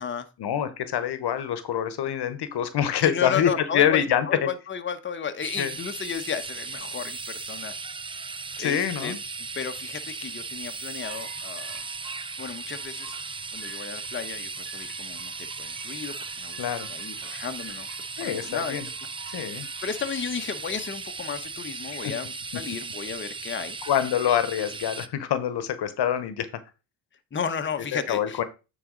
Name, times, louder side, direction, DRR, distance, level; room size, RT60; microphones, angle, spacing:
voice 1, 0.4-4.5 5.6-5.7 8.6-9.2 16.6-16.9 18.2-18.8 19.3-19.7 21.9-22.1 23.9-26.5 27.9-28.4, left 9 dB, 65° left, 1.1 m, -25 dB
voice 2, 3.0-7.7 8.6-9.1 9.5-11.8 12.4-13.2 13.5-16.6 16.9-17.9 18.2-18.8 19.2-19.4 19.8-23.8 27.3-28.4, left 6 dB, 25° left, 1.0 m, -33 dB
sound 1, 5.4-25.1, right 4 dB, 15° right, 0.4 m, -37 dB
sound 2, 11.0-20.9, right 7 dB, 80° right, 2.4 m, -50 dB
9.1 x 4.0 x 3.8 m
supercardioid pair, 75°, 44 cm